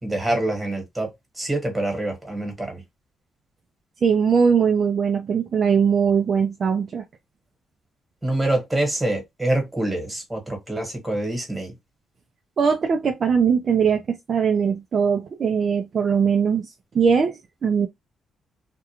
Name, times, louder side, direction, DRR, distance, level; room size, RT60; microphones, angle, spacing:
voice 1, 0.0-1.1 1.4-2.8 8.2-11.7, right 1 dB, 15° right, 1.3 m, -25 dB
voice 2, 4.0-7.0 12.6-16.7 16.9-17.9, right 6 dB, 50° right, 0.4 m, -20 dB
2.4 x 2.2 x 2.9 m
cardioid pair, 90°, 0 cm